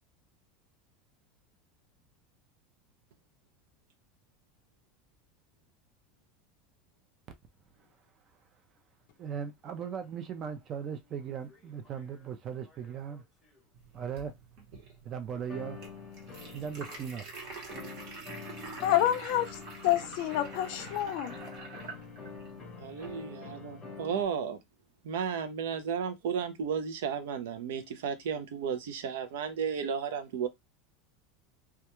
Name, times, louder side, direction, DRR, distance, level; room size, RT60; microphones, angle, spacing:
voice 1, 9.2-13.2 13.9-14.3 15.0-15.8 16.5-17.3, right 7 dB, 25° right, 0.4 m, -38 dB
sound 1, 10.0-10.1 11.2-12.3 12.6-13.6 15.5-17.0 17.7-24.2, left 5 dB, 15° left, 0.7 m, -46 dB
sound 2, 13.7-23.3, right 3 dB, 45° right, 0.9 m, -47 dB
voice 2, 18.8-19.5 19.8-21.4, left 12 dB, 55° left, 0.5 m, -28 dB
voice 3, 22.8-24.6 25.0-30.5, right 7 dB, 90° right, 0.5 m, -33 dB
2.3 x 2.2 x 2.9 m
supercardioid pair, 175°, 0 cm